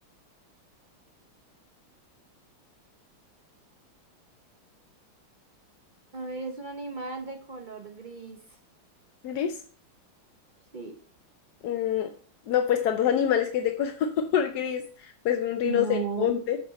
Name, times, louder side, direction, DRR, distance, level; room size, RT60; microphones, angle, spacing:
voice 1, 6.1-8.4 10.7-10.9 15.6-16.3, right 4 dB, 55° right, 3 dB, 0.5 m, -35 dB
voice 2, 9.2-9.6 11.6-12.1 12.5-16.6, left 9 dB, 70° left, 6 dB, 1.0 m, -26 dB
8.6 x 6.1 x 4.1 m, 0.43 s
omnidirectional pair, 2.3 m